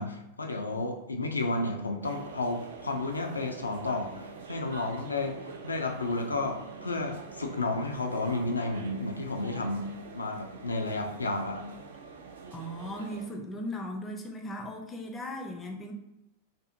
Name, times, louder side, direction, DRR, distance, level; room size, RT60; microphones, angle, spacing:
voice 1, 0.0-9.9 10.1-11.7, left 2 dB, 75° left, 3 dB, 0.4 m, -32 dB
sound 1, 2.0-13.3, right 5 dB, 60° right, 0.3 m, -45 dB
voice 2, 12.5-15.9, equal, 15° left, 2 dB, 0.4 m, -37 dB
2.6 x 2.6 x 2.4 m, 0.89 s
figure-of-eight pair, 90°, 0 cm